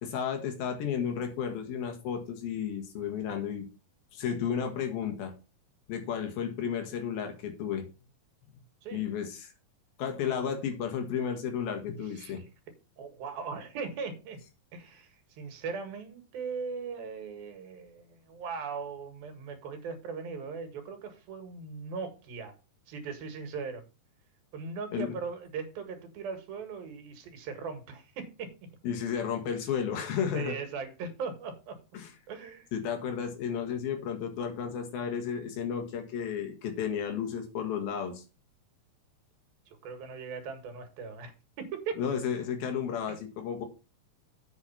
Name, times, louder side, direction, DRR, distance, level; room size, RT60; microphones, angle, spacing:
voice 1, 0.0-3.7 4.1-5.3 5.9-7.9 8.9-9.5 10.0-12.4 24.9-25.2 28.8-30.6 31.9-32.1 32.7-38.2 42.0-43.7, left 7 dB, 85° left, 5 dB, 3.6 m, -33 dB
voice 2, 12.1-12.5 13.0-14.4 14.7-22.5 22.9-23.8 24.5-28.5 29.5-29.6 30.3-31.8 32.3-32.7 39.7-42.0, right 5 dB, 85° right, 7 dB, 3.6 m, -39 dB
8.2 x 6.1 x 5.6 m, 0.30 s
omnidirectional pair, 4.1 m